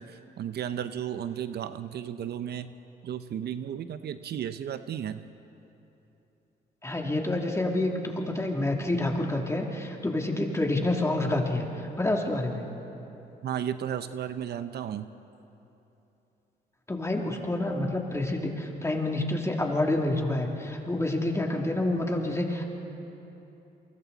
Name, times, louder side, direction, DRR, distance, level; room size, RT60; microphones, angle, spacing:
voice 1, 0.0-2.7 3.0-5.2 13.4-15.1, right 9 dB, 70° right, 11 dB, 0.7 m, -34 dB
voice 2, 6.8-11.7 12.0-12.6 16.9-22.6, left 2 dB, 15° left, 1 dB, 2.8 m, -28 dB
29.5 x 23.5 x 4.1 m, 3.0 s
cardioid pair, 85°, 18 cm